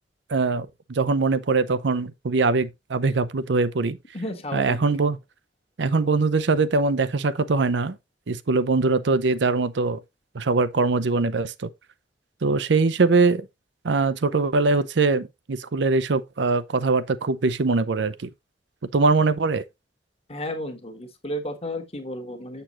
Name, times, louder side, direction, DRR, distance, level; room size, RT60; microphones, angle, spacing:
voice 1, 0.3-4.0 4.5-5.2 5.8-8.0 8.3-10.0 10.3-11.7 12.4-13.5 13.8-18.3 18.9-19.6, right 3 dB, 70° right, 0.6 m, -22 dB
voice 2, 4.1-4.8 20.3-22.6, left 1 dB, 35° left, 1.4 m, -32 dB
7.5 x 6.8 x 3.0 m
head